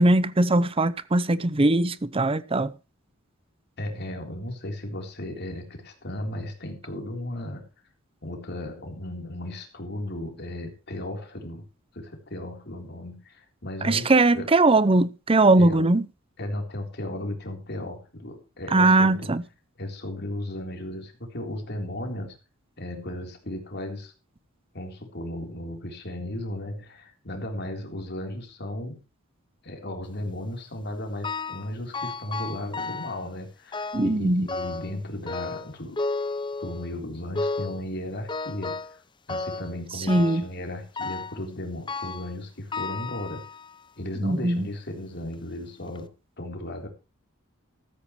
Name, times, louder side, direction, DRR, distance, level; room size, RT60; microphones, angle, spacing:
voice 1, 0.0-2.7 13.8-16.0 18.7-19.4 33.9-34.5 40.1-40.4 44.2-44.7, right 2 dB, 25° right, 0.7 m, -20 dB
voice 2, 3.8-7.7 8.2-11.7 11.9-14.6 15.6-15.9 16.4-19.4 19.8-22.4 22.8-24.1 24.7-29.0 29.6-36.0 36.6-39.0 39.3-43.4 44.0-46.1 46.4-46.9, left 1 dB, 50° left, 3.7 m, -35 dB
sound 1, 31.2-31.7 31.9-33.2 33.7-34.2 34.5-35.0 35.3-36.9 37.4-37.8 38.3-39.0 39.3-39.7 40.1-40.5 41.0-41.4 41.9-42.3 42.7-43.8 44.4-44.5 45.3-45.4 45.9-46.0, left 3 dB, 20° left, 0.7 m, -33 dB
14.5 x 13.5 x 3.1 m
head